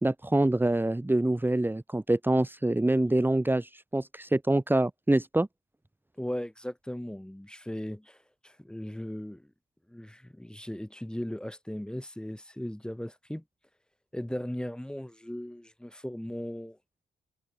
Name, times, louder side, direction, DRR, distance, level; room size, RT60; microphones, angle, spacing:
voice 1, 0.0-5.5, right 1 dB, 10° right, 2.2 m, -25 dB
voice 2, 6.2-8.2 8.4-9.5 9.9-13.4 14.1-16.8, left 1 dB, 5° left, 2.9 m, -37 dB
cardioid pair, 65°, 17 cm